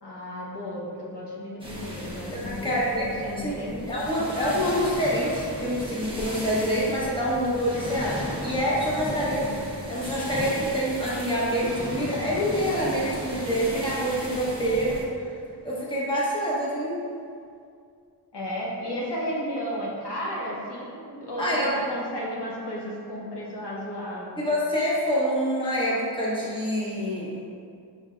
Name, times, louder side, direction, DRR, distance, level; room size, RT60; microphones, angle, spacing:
voice 1, 0.0-4.1 10.2-10.3 18.3-24.4, equal, 70° left, -6 dB, 0.9 m, -33 dB
sound 1, 1.6-15.1, left 1 dB, 10° right, 0.8 m, -35 dB
voice 2, 2.3-3.0 3.4-15.0 15.6-17.0 21.4-21.8 24.4-27.3, equal, 10° left, -7 dB, 1.2 m, -26 dB
5.5 x 3.5 x 2.5 m, 2.3 s
wide cardioid pair, 60°, 42 cm